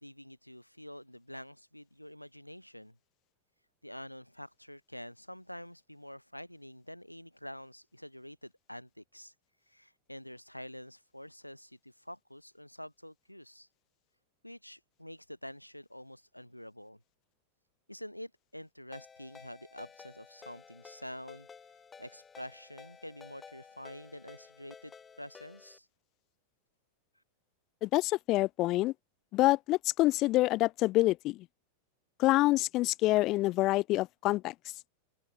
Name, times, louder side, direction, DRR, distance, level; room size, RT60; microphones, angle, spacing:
voice 1, 0.0-2.9 3.8-9.3 9.6-13.7 14.4-17.0 17.9-25.9 27.1-27.2, equal, 90° left, 3.1 m, -47 dB
Ringtone, 18.9-25.8, left 6 dB, 15° left, 1.6 m, -54 dB
voice 2, 27.8-28.9 29.3-31.5 32.2-34.5, left 18 dB, 40° left, 0.4 m, -27 dB
figure-of-eight pair, 90°, 0 cm